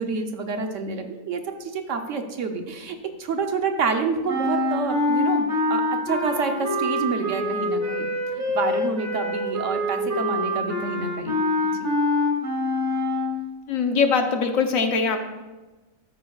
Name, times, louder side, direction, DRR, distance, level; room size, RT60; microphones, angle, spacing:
voice 1, 0.0-8.1 8.5-11.4, right 4 dB, 65° right, 5 dB, 1.2 m, -28 dB
sound 1, 4.3-13.4, left 1 dB, 35° right, 1.6 m, -25 dB
voice 2, 13.7-15.3, left 5 dB, 75° left, 6 dB, 1.3 m, -22 dB
12.5 x 9.4 x 2.4 m, 1.2 s
omnidirectional pair, 1.4 m